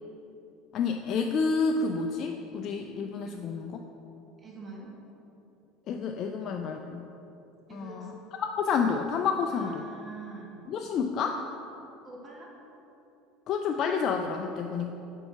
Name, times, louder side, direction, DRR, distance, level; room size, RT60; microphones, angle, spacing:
voice 1, 0.7-3.8 5.9-7.1 7.7-8.1 8.4-9.8 10.7-11.4 13.5-14.9, left 5 dB, 50° left, 3 dB, 0.3 m, -29 dB
voice 2, 4.4-4.9 7.7-8.1 9.5-10.5 12.0-12.5, right 3 dB, 30° right, -3 dB, 1.3 m, -44 dB
4.5 x 4.3 x 5.6 m, 2.9 s
hypercardioid pair, 80°, 0 cm